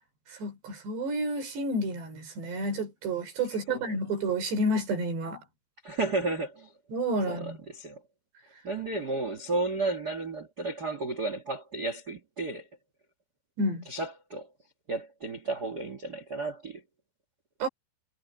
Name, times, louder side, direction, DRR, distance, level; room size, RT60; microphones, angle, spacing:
voice 1, 0.3-5.4 6.9-7.6 13.6-13.8 17.6-17.7, right 1 dB, 65° right, 6.6 m, -30 dB
voice 2, 5.8-6.7 7.3-8.0 8.6-12.7 13.9-14.5 14.9-16.8, right 2 dB, 90° right, 0.8 m, -33 dB
omnidirectional pair, 5.3 m